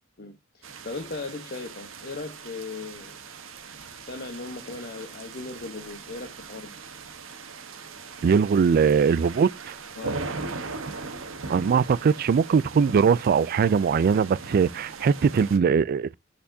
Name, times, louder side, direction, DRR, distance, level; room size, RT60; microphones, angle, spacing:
voice 1, 0.2-3.2 4.0-6.8 10.0-10.3, left 3 dB, 50° left, 1.0 m, -38 dB
sound 1, 0.6-15.6, right 4 dB, 80° right, 1.1 m, -39 dB
voice 2, 8.2-9.8 11.5-16.1, right 6 dB, 50° right, 0.3 m, -21 dB
8.4 x 4.3 x 2.7 m
head